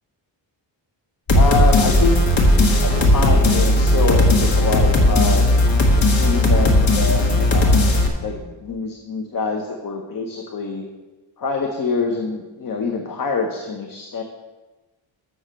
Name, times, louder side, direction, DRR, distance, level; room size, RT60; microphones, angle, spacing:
sound 1, 1.3-8.1, left 1 dB, 70° left, 1.5 m, -16 dB
voice 1, 1.3-2.2 2.8-5.5 6.1-7.9 8.2-10.8 11.4-14.2, left 4 dB, 45° left, 3 dB, 0.8 m, -25 dB
6.7 x 6.2 x 7.4 m, 1.2 s
wide cardioid pair, 170°, 47 cm